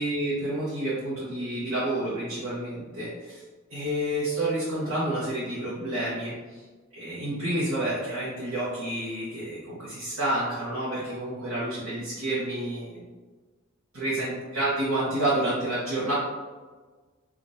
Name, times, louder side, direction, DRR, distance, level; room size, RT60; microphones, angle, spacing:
voice 1, 0.0-3.4 3.7-6.6 6.9-13.0 13.9-16.1, right 1 dB, 85° right, -9 dB, 1.0 m, -29 dB
5.0 x 2.5 x 2.6 m, 1.3 s
head